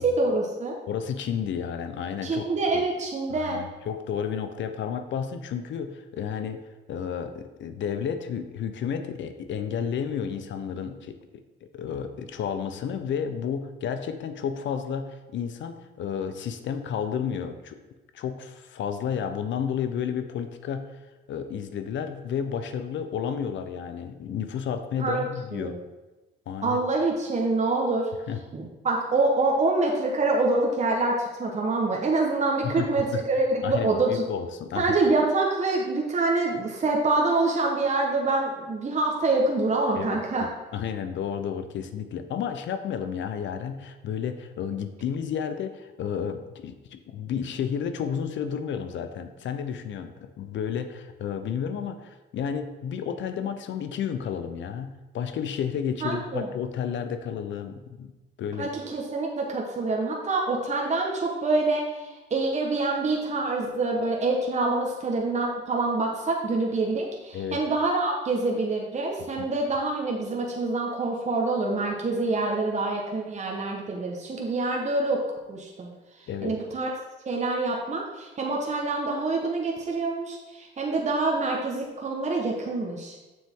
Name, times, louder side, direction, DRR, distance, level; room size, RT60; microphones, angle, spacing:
voice 1, 0.0-0.7 2.2-3.6 25.0-25.3 25.5-25.7 26.6-28.1 28.5-34.2 34.8-40.5 56.0-56.5 58.6-75.2 75.5-75.9 76.4-76.9 77.3-83.2, right 3 dB, 35° right, -1 dB, 1.2 m, -26 dB
voice 2, 0.9-2.8 3.3-6.6 6.9-11.2 11.6-17.8 18.1-21.0 21.3-25.8 26.5-26.8 28.3-28.4 32.6-33.2 33.6-35.0 39.9-40.2 40.7-58.1 58.4-58.7 67.3-67.6 76.3-76.5, left 7 dB, 70° left, 9 dB, 0.7 m, -31 dB
7.2 x 6.3 x 3.7 m, 1.1 s
cardioid pair, 90°, 20 cm